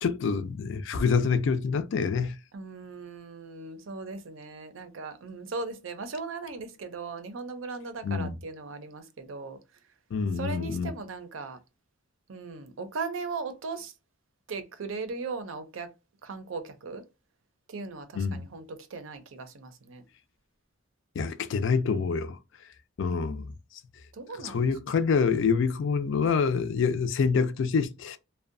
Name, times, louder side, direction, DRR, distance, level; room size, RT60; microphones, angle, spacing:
voice 1, 0.0-2.4 8.0-8.4 10.1-10.9 18.1-18.4 21.2-22.4 23.0-23.5 24.4-28.2, left 5 dB, 65° left, 0.4 m, -26 dB
voice 2, 2.5-9.6 10.4-11.6 12.3-13.9 14.5-15.9 16.2-17.0 17.7-20.0 24.1-24.7 26.1-26.3, right 4 dB, 85° right, 0.5 m, -38 dB
2.6 x 2.1 x 2.5 m
head